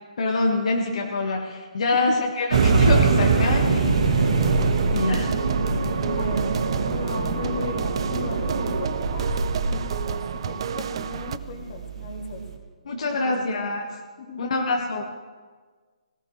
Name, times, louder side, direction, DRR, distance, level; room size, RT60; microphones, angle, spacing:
voice 1, 0.2-4.3 4.9-5.3 12.8-13.8 14.4-15.2, left 3 dB, 60° left, 0 dB, 1.6 m, -25 dB
voice 2, 1.9-2.2 6.0-12.4 13.1-13.7 14.2-14.8, left 4 dB, 40° left, 1 dB, 2.4 m, -36 dB
sound 1, 2.5-12.5, right 4 dB, 60° right, 2.1 m, -23 dB
sound 2, 4.4-11.4, right 8 dB, 45° right, 0.5 m, -31 dB
18.0 x 17.5 x 3.2 m, 1.5 s
hypercardioid pair, 160°, 4 cm